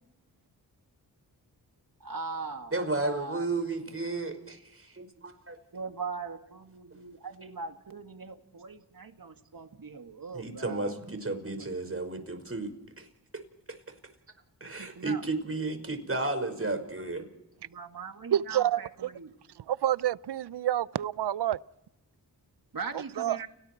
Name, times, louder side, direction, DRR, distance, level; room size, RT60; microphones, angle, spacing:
voice 1, 2.0-3.4 5.7-10.9 11.6-11.7 14.6-15.2 17.6-19.3 22.7-23.5, right 4 dB, 55° right, 2.4 m, -40 dB
voice 2, 2.7-5.6 10.3-12.7 13.0-13.1 14.6-17.2, right 2 dB, 35° right, 5.4 m, -33 dB
voice 3, 18.3-18.8 19.7-21.6 23.2-23.4, right 11 dB, 80° right, 0.7 m, -28 dB
30.0 x 19.0 x 4.6 m
cardioid pair, 45°, 40 cm